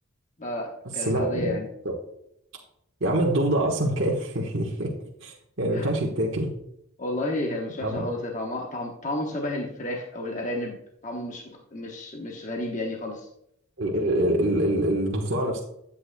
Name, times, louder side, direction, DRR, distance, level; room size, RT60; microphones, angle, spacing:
voice 1, 0.4-1.7 5.7-5.9 7.0-13.3, left 1 dB, 35° left, 0 dB, 1.0 m, -32 dB
voice 2, 1.0-1.5 3.0-4.9 5.2-6.5 7.8-8.0 13.8-15.6, right 1 dB, 60° right, -2 dB, 1.3 m, -25 dB
11.0 x 8.6 x 2.3 m, 0.76 s
head